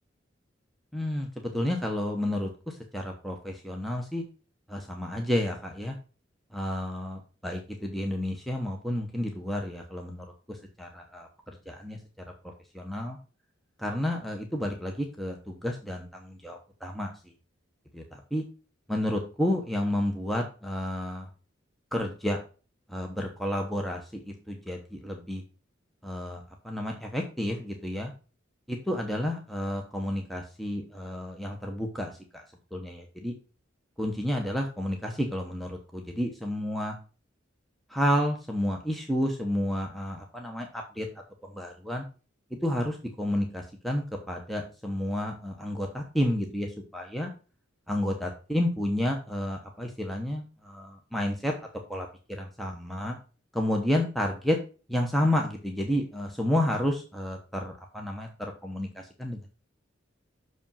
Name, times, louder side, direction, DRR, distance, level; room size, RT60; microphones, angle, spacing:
voice 1, 0.9-4.2 4.7-6.0 6.5-12.0 12.7-13.2 13.8-17.1 17.9-18.4 18.9-21.3 21.9-22.4 22.9-25.4 26.0-28.1 28.7-32.4 32.7-33.3 34.0-36.9 37.9-41.1 41.4-42.0 42.6-47.3 47.9-51.5 51.9-53.2 53.5-54.6 54.9-59.5, left 1 dB, ahead, 1 dB, 1.0 m, -31 dB
6.3 x 5.0 x 5.6 m, 0.35 s
head